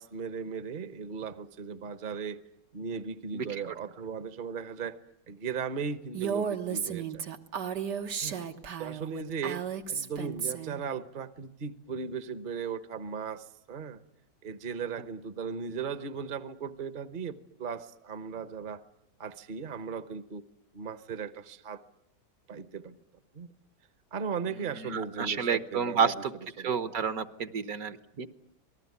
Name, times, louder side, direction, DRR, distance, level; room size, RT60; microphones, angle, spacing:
voice 1, 0.0-2.4 2.7-5.0 5.3-7.2 8.2-8.4 8.8-14.0 14.4-18.8 19.2-20.4 20.7-21.8 22.5-23.0 23.3-23.5 24.1-26.1 26.6-26.7, right 6 dB, 35° right, 12 dB, 1.0 m, -37 dB
Female speech woman speaking, 6.1-10.8, right 7 dB, 80° right, 2.1 m, -34 dB
voice 2, 24.7-26.3 26.6-28.3, right 6 dB, 60° right, 11 dB, 1.6 m, -30 dB
27.0 x 19.0 x 9.6 m, 0.81 s
omnidirectional pair, 1.8 m